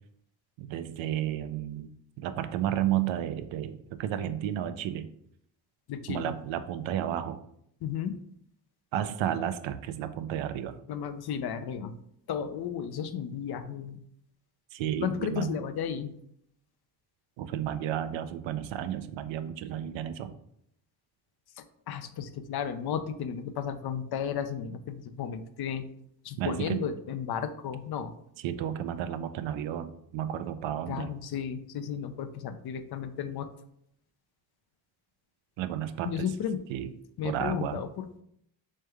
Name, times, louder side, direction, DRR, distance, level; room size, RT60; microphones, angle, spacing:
voice 1, 0.6-1.9 2.2-5.1 6.1-7.4 8.9-10.7 14.7-15.5 17.4-20.3 26.4-26.8 28.4-31.1 35.6-36.3 36.7-36.9 37.2-37.8, right 11 dB, 70° right, 10 dB, 0.5 m, -32 dB
voice 2, 5.9-6.3 7.8-8.2 10.9-11.9 12.3-14.0 15.0-16.1 21.6-25.9 26.2-28.1 30.9-33.5 36.0-36.6 37.2-38.2, left 8 dB, 55° left, 9 dB, 0.5 m, -34 dB
3.4 x 3.2 x 3.3 m, 0.71 s
supercardioid pair, 55°, 48 cm